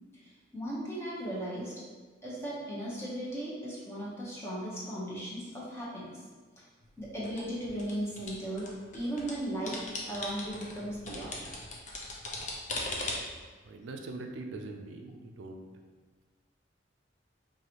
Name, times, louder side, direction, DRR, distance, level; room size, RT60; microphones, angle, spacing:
voice 1, 0.1-1.7 2.2-6.1 7.0-9.8 10.1-11.3, right 1 dB, 15° left, -7 dB, 0.9 m, -37 dB
sound 1, 6.8-9.3 9.7-13.4, left 2 dB, 40° left, 0.5 m, -39 dB
voice 2, 13.6-15.7, right 2 dB, 75° right, 3 dB, 0.4 m, -42 dB
4.7 x 2.6 x 2.9 m, 1.4 s
head